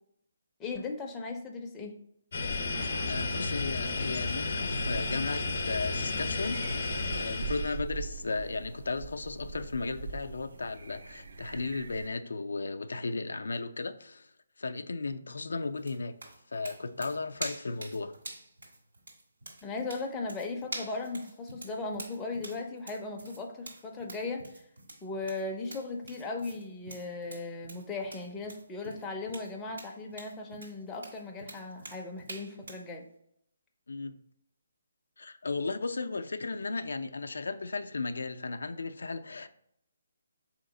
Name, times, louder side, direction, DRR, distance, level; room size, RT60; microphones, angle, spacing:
voice 1, 0.6-2.0 19.6-24.6 25.0-33.1, left 3 dB, 10° left, 0.4 m, -37 dB
sound 1, 2.3-7.8, left 3 dB, 50° left, 0.6 m, -32 dB
sound 2, 2.7-12.1, right 4 dB, 70° right, 0.4 m, -42 dB
voice 2, 3.1-6.8 7.1-14.3 14.6-16.2 16.5-18.1 33.9-34.2 35.2-39.5, left 3 dB, 90° left, 0.3 m, -35 dB
sound 3, 15.8-32.9, right 2 dB, 85° right, 1.5 m, -46 dB
4.0 x 2.9 x 3.7 m
hypercardioid pair, 170°, 0 cm